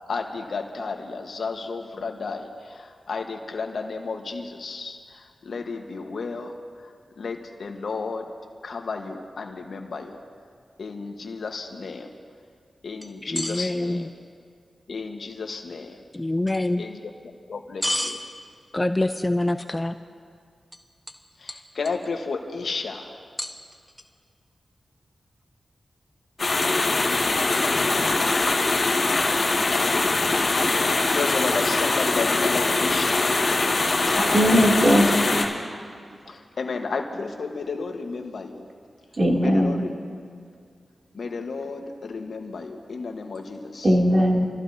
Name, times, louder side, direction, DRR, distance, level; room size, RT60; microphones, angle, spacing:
voice 1, 0.0-6.5 7.2-8.3 8.6-10.2 10.8-12.1 12.8-14.1 14.9-16.0 16.8-17.0 17.5-18.2 21.4-23.1 31.1-33.3 36.3-38.7 39.4-39.9 41.1-43.9, left 4 dB, 75° left, 3 dB, 1.4 m, -32 dB
sound 1, 13.0-13.7 16.5-16.6 17.8-18.2 20.7-20.8 21.1-21.2 21.5-22.1 23.4-24.0, equal, ahead, 1.3 m, -30 dB
voice 2, 13.2-14.1 16.1-16.9 18.7-20.0, left 1 dB, 25° left, 9 dB, 0.6 m, -25 dB
sound 2, 26.4-35.5, left 3 dB, 55° left, 2.1 m, -22 dB
voice 3, 34.1-35.1 39.2-39.8 43.8-44.4, equal, 45° right, -2 dB, 2.9 m, -19 dB
28.5 x 14.5 x 2.8 m, 2.2 s
cardioid pair, 50°, 0 cm